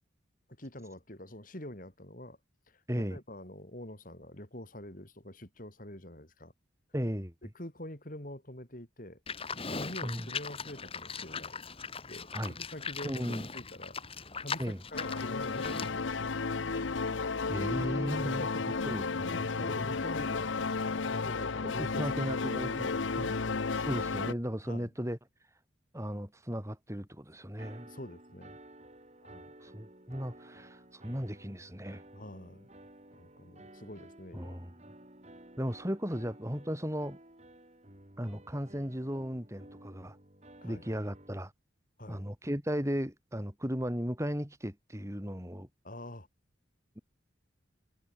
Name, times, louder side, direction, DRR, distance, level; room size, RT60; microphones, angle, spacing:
voice 1, 0.6-2.4 2.7-6.5 7.4-9.2 9.7-11.6 12.1-16.4 18.1-22.5 22.8-23.7 24.7-24.9 27.8-28.6 29.2-29.5 32.1-32.7 33.1-34.6 40.6-40.8 42.0-42.2 45.8-46.3, left 1 dB, 45° left, 5.0 m, -46 dB
voice 2, 2.9-3.2 6.9-7.3 10.0-10.2 12.3-12.5 13.0-13.4 14.6-14.8 16.7-16.9 17.5-18.4 18.8-19.7 21.6-22.9 23.2-23.3 23.7-25.2 25.9-27.9 29.6-32.0 34.3-34.7 35.6-37.2 38.2-40.2 40.6-41.5 42.1-45.7, equal, 15° right, 4.9 m, -36 dB
Livestock farm animals working animals, 9.3-16.0, left 5 dB, 30° left, 2.9 m, -40 dB
sound 1, 14.9-24.3, left 4 dB, 80° left, 0.9 m, -33 dB
sound 2, 27.6-41.3, right 1 dB, 35° right, 6.2 m, -54 dB
head